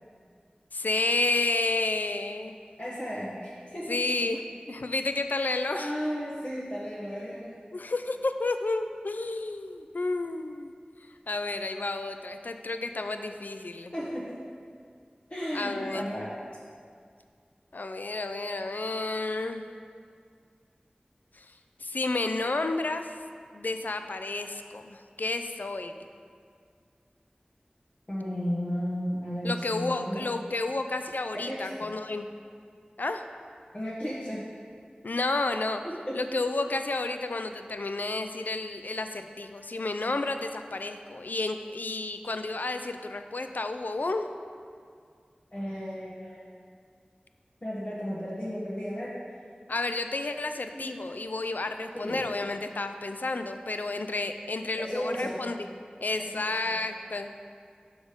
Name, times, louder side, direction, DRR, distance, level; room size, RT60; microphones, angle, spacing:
voice 1, 0.7-2.6 3.9-4.4 4.7-5.9 7.7-10.7 11.3-13.9 15.5-16.1 17.7-19.7 21.3-21.5 21.8-23.1 23.5-25.9 29.4-32.3 33.0-33.2 35.0-35.8 36.1-44.3 49.7-55.7 56.0-57.3, left 2 dB, 75° left, 7 dB, 0.4 m, -31 dB
voice 2, 2.8-4.8 5.3-5.4 5.7-7.6 13.9-14.5 15.3-16.5 28.1-30.3 31.3-31.9 33.7-34.4 35.8-36.2 45.5-46.5 47.6-49.1 50.7-50.9 51.9-52.2 54.8-55.4 56.2-56.7, equal, 50° left, -9 dB, 1.3 m, -34 dB
6.2 x 5.1 x 5.1 m, 2.1 s
wide cardioid pair, 40°, 3 cm